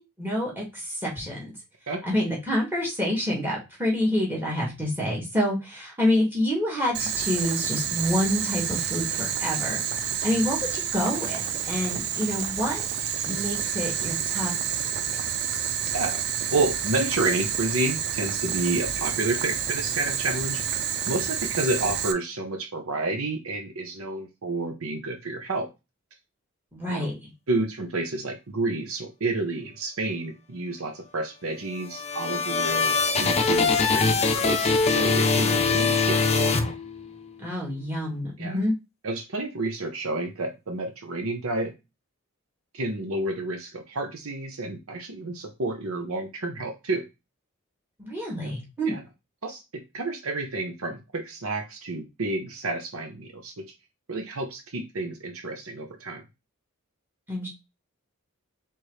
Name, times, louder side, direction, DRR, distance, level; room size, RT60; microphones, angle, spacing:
voice 1, 0.0-1.5 2.1-9.8 10.2-12.9 13.3-14.5 26.7-27.1 37.4-38.7 48.0-48.9 57.3-57.5, left 1 dB, 10° right, -3 dB, 2.1 m, -27 dB
Boiling, 6.9-22.1, right 8 dB, 50° right, 0.5 m, -29 dB
voice 2, 16.5-20.8 21.1-25.7 26.9-27.1 27.5-36.6 38.4-38.6 39.0-41.7 42.7-47.0 48.4-48.5 48.8-49.0 49.4-53.7 54.1-56.2, right 2 dB, 75° right, 4 dB, 0.9 m, -30 dB
sound 1, 31.7-37.3, left 4 dB, 30° left, 0.6 m, -23 dB
4.5 x 3.7 x 3.2 m, 0.25 s
head